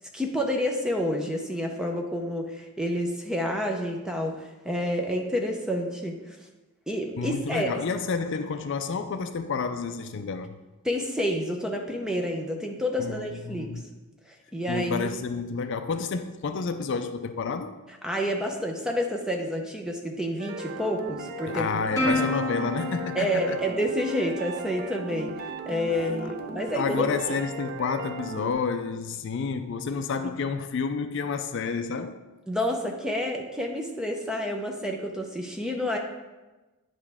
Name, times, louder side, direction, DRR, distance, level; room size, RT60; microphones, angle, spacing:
voice 1, 0.1-6.4 6.9-7.8 10.8-13.7 14.3-15.1 18.0-21.7 22.1-22.2 23.1-25.3 25.7-27.1 32.5-36.0, equal, 5° right, 0.6 m, -29 dB
voice 2, 7.2-10.6 13.0-13.9 14.7-17.8 21.5-23.6 25.9-26.3 26.7-32.2, left 5 dB, 55° left, 0.4 m, -30 dB
sound 1, 20.4-28.5, right 2 dB, 40° right, 0.5 m, -37 dB
Plucked string instrument, 22.0-24.7, left 1 dB, 15° left, 2.3 m, -30 dB
9.6 x 5.2 x 3.5 m
head